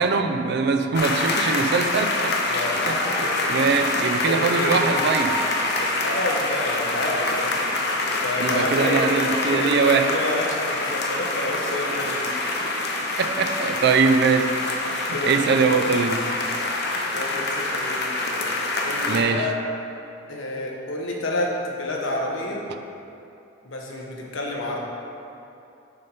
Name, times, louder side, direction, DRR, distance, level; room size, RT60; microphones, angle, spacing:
voice 1, 0.0-2.6 2.9-3.0 3.5-5.4 8.4-10.1 13.2-14.5 14.9-16.3 19.1-19.5, right 5 dB, 55° right, 7 dB, 0.4 m, -22 dB
sound 1, 0.9-19.2, left 2 dB, 55° left, 0.7 m, -25 dB
voice 2, 2.5-3.7 4.3-4.8 5.8-12.2 15.1-15.8 17.1-19.5 20.3-22.6 23.6-24.8, left 1 dB, 75° left, -1 dB, 1.0 m, -29 dB
6.5 x 4.3 x 5.3 m, 2.7 s
head